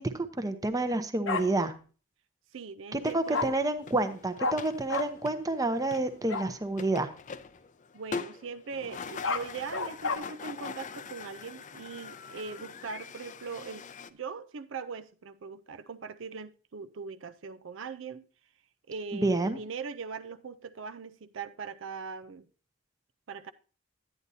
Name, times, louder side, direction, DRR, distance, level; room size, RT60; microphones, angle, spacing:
voice 1, 0.0-1.7 2.9-7.1 19.1-19.6, right 2 dB, 20° right, 0.8 m, -29 dB
Bark, 1.3-1.4 3.3-3.5 4.4-4.6 4.9-5.1 6.3-6.5 9.0-10.2, left 4 dB, 90° left, 1.0 m, -30 dB
voice 2, 2.5-3.6 7.9-18.2 18.9-22.5 23.3-23.5, right 5 dB, 80° right, 0.5 m, -40 dB
sound 1, 3.0-14.1, left 5 dB, 40° left, 0.5 m, -44 dB
10.5 x 9.6 x 2.7 m
head